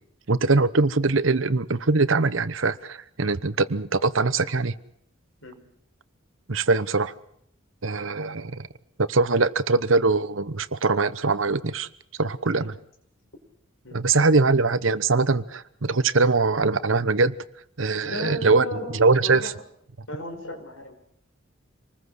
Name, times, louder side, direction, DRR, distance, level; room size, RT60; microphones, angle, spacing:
voice 1, 0.3-4.7 6.5-7.1 7.8-8.7 9.0-11.9 12.2-12.7 13.9-17.3 17.8-18.7 19.0-19.5, right 3 dB, 80° right, 15 dB, 1.0 m, -22 dB
voice 2, 18.0-19.5 20.1-20.9, equal, 80° left, 5 dB, 5.1 m, -36 dB
26.5 x 20.5 x 6.4 m, 0.69 s
head